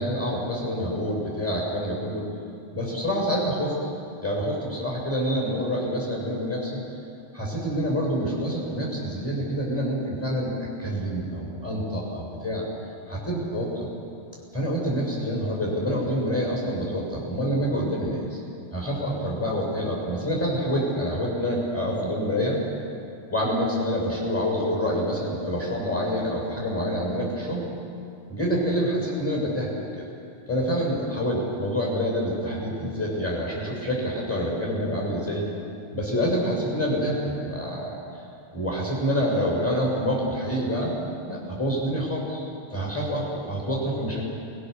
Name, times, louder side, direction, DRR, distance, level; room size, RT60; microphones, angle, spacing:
voice 1, 0.0-2.2 2.7-3.7 4.2-6.8 7.3-12.6 13.1-13.9 14.5-18.4 18.7-22.6 23.3-27.6 28.3-30.0 30.5-35.4 35.9-38.0 38.5-40.9 41.3-42.4 42.7-44.3, equal, 5° left, -4 dB, 6.6 m, -27 dB
29.5 x 22.0 x 6.8 m, 2.5 s
omnidirectional pair, 5.0 m